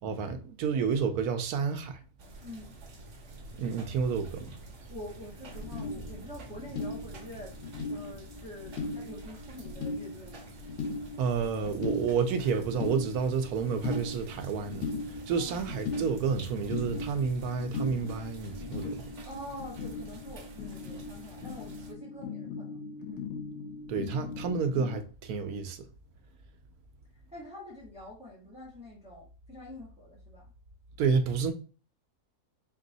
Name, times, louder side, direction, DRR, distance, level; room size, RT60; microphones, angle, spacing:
voice 1, 0.0-2.0 3.6-4.6 11.2-19.1 23.9-25.9 31.0-31.5, right 6 dB, 80° right, 1.1 m, -30 dB
sound 1, 2.2-21.9, right 2 dB, 55° right, 1.1 m, -48 dB
voice 2, 2.4-2.7 4.9-7.5 7.9-10.5 15.3-15.6 19.2-22.8 23.0-23.2 27.3-30.5, left 1 dB, 5° right, 1.3 m, -46 dB
sound 2, 5.2-5.3 5.4-25.0, left 3 dB, 60° left, 1.0 m, -39 dB
4.4 x 3.0 x 2.7 m
omnidirectional pair, 1.6 m